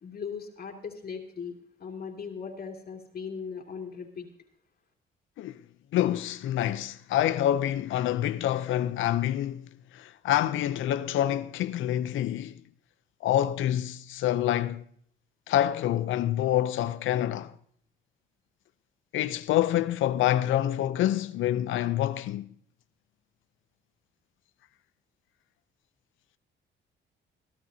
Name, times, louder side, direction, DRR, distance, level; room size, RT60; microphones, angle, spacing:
voice 1, 0.0-1.5 1.8-4.3, left 6 dB, 50° left, 2.6 m, -38 dB
voice 2, 5.9-9.7 9.9-12.6 13.2-14.8 15.5-17.5 19.1-22.5, left 12 dB, 80° left, 0.6 m, -27 dB
22.0 x 12.5 x 2.8 m
cardioid pair, 90°, 20 cm